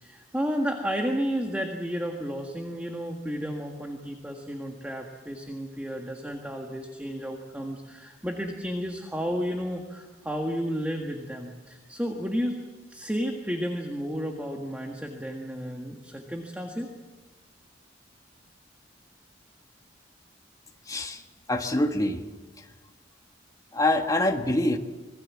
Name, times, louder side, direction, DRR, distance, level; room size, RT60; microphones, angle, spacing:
voice 1, 0.0-12.6 12.9-16.9, equal, 10° right, 2 dB, 1.7 m, -32 dB
voice 2, 20.9-21.2 21.5-22.2 23.7-24.8, left 1 dB, 20° left, 4 dB, 1.7 m, -25 dB
26.0 x 20.5 x 7.4 m, 1.3 s
head